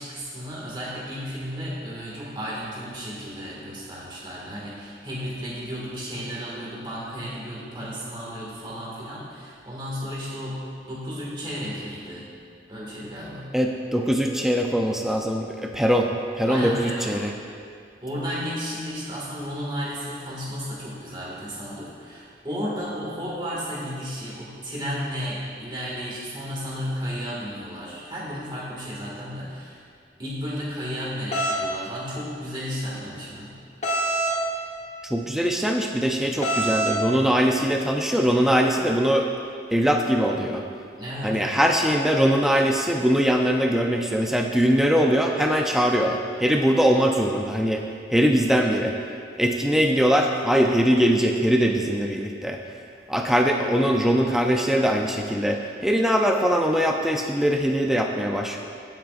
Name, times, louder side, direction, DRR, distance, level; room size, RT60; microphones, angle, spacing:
voice 1, 0.0-12.3 12.7-13.5 16.5-17.2 18.0-29.8 30.2-33.6 41.0-41.6, equal, 25° right, -6 dB, 1.9 m, -33 dB
voice 2, 13.5-16.1 16.4-17.3 35.0-39.3 39.7-40.6 41.2-47.8 48.1-48.9 49.4-52.6 53.1-58.6, equal, ahead, 1 dB, 0.5 m, -22 dB
sound 1, 31.3-31.6 33.8-34.4 36.4-37.0, right 1 dB, 35° left, 1.3 m, -24 dB
17.0 x 7.4 x 2.5 m, 2.2 s
head